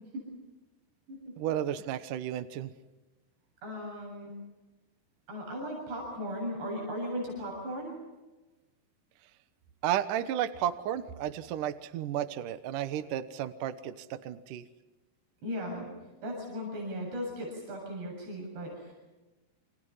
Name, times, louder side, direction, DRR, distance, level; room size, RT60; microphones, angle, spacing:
voice 1, 1.4-2.7 9.8-14.6, right 11 dB, 65° right, 11 dB, 2.3 m, -33 dB
voice 2, 3.6-4.3 5.3-8.0 15.4-15.9 16.2-18.9, equal, 85° right, 0 dB, 9.4 m, -37 dB
29.0 x 26.5 x 5.6 m, 1.1 s
omnidirectional pair, 4.7 m